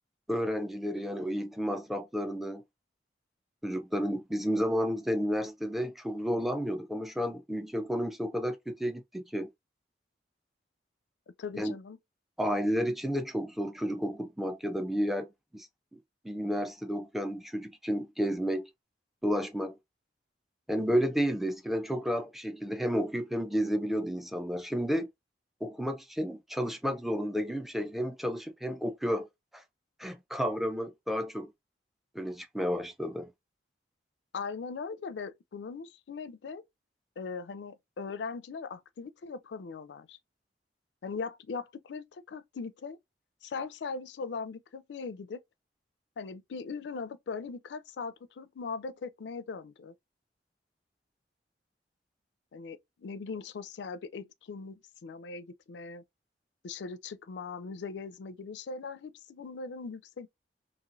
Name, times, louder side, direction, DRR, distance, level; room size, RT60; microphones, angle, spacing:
voice 1, 0.3-2.6 3.6-9.5 11.6-11.8 12.4-15.3 15.5-15.7 15.9-18.7 19.2-19.7 20.7-25.1 25.6-29.3 29.5-29.6 30.0-31.5 32.1-33.3, equal, ahead, 0.4 m, -31 dB
voice 2, 11.4-12.0 34.3-36.6 37.2-40.2 41.0-43.0 43.4-45.4 46.2-49.9 52.5-56.0 56.6-60.3, left 4 dB, 75° left, 0.4 m, -40 dB
3.0 x 2.8 x 2.5 m
head